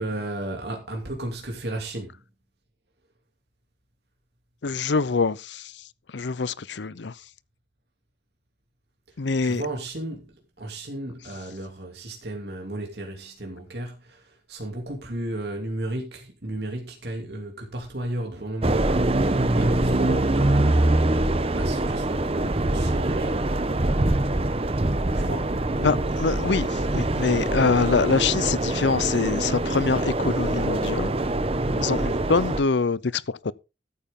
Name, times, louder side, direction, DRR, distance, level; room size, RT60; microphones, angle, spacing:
voice 1, 0.0-2.2 9.1-24.1 25.1-26.0, right 1 dB, 60° right, 2.8 m, -34 dB
voice 2, 4.6-5.7 6.1-7.1 9.2-9.6 25.8-31.1 31.7-33.5, left 4 dB, 70° left, 0.6 m, -24 dB
sound 1, 18.6-32.6, right 2 dB, 30° right, 0.8 m, -24 dB
14.0 x 8.7 x 3.7 m
head